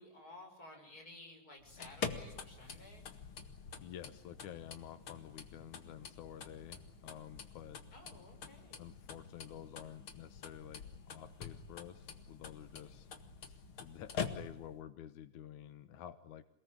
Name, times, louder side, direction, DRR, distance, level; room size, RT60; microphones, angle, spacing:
voice 1, 0.0-3.0 7.9-8.8, left 1 dB, 30° left, 3 dB, 6.6 m, -55 dB
sound 1, 1.6-14.8, left 6 dB, 50° left, 2.4 m, -46 dB
voice 2, 3.8-7.8 8.8-13.1 13.8-16.4, left 10 dB, 85° left, 12 dB, 2.7 m, -50 dB
28.0 x 19.0 x 9.9 m, 0.73 s
omnidirectional pair, 3.3 m